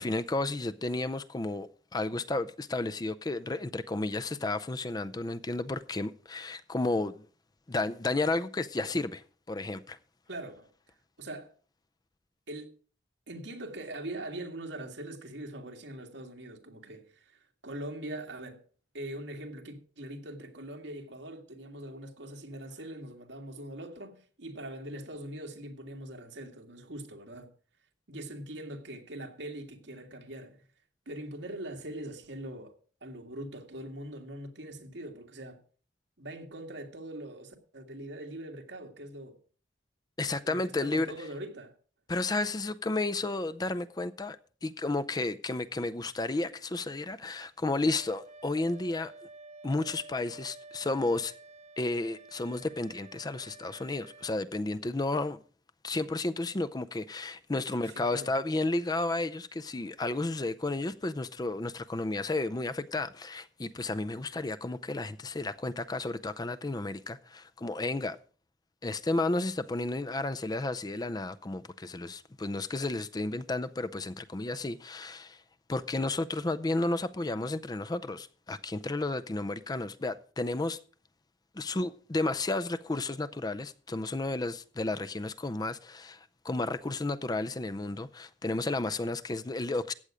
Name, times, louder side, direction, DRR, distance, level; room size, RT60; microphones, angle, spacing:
voice 1, 0.0-7.2 7.7-9.2 9.5-10.0 40.2-41.1 42.1-44.4 44.6-49.1 49.6-51.3 51.8-55.4 55.8-68.2 68.8-75.4 75.7-80.8 81.6-89.9, left 2 dB, 20° left, 0.5 m, -32 dB
voice 2, 10.3-10.7 11.2-11.5 12.5-12.8 13.3-18.6 18.9-27.5 28.1-30.6 31.1-32.7 33.0-35.6 36.2-39.4 40.4-41.7 57.8-58.3, right 1 dB, 70° right, 2.1 m, -42 dB
Wind instrument woodwind instrument, 47.9-54.4, right 3 dB, 35° right, 0.6 m, -51 dB
15.0 x 8.8 x 5.0 m
head